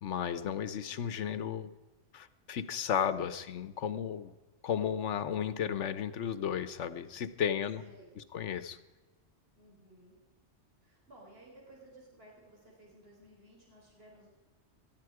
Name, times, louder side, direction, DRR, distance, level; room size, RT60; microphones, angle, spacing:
voice 1, 0.0-1.7 2.1-4.3 4.6-7.8 8.2-8.8, left 8 dB, 90° left, 13 dB, 1.2 m, -34 dB
voice 2, 7.8-8.3 9.6-10.1 10.8-14.3, right 1 dB, 55° right, -3 dB, 4.7 m, -57 dB
18.5 x 14.0 x 4.8 m, 1.2 s
omnidirectional pair, 1.2 m